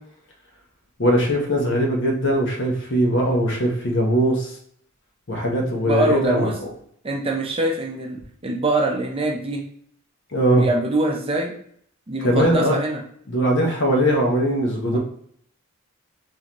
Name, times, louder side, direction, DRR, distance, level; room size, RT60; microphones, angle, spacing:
voice 1, 1.0-4.5 5.3-6.7 10.3-10.6 12.2-12.8 13.3-15.0, equal, 55° left, 0 dB, 0.9 m, -20 dB
voice 2, 5.8-6.6 7.0-8.2 8.4-9.6 10.5-11.5 12.1-13.0 14.9-15.0, right 1 dB, 25° right, 0 dB, 0.5 m, -23 dB
3.9 x 2.7 x 3.0 m, 0.65 s
head